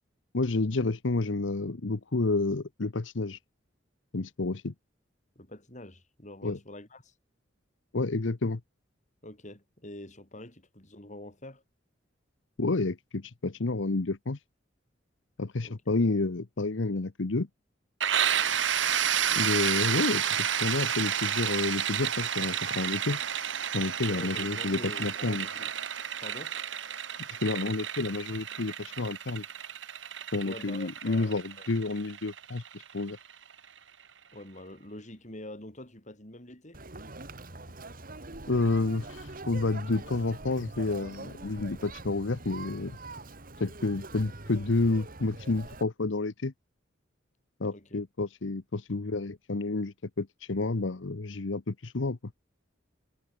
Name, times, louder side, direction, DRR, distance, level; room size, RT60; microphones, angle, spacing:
voice 1, 0.3-3.4 4.1-4.7 6.4-6.6 7.9-8.6 12.6-14.4 15.4-17.5 19.4-23.2 23.7-25.5 27.4-29.4 30.3-33.2 38.5-43.0 43.6-46.5 47.6-52.2, left 3 dB, 85° left, 0.9 m, -30 dB
voice 2, 5.4-7.1 9.2-11.6 15.6-15.7 24.1-25.7 26.2-26.6 30.4-31.7 34.3-36.8 47.7-48.0, left 1 dB, 40° left, 6.1 m, -45 dB
sound 1, 18.0-33.6, right 9 dB, 80° right, 1.9 m, -31 dB
Conversation, 36.7-45.8, right 2 dB, 50° right, 2.8 m, -44 dB
head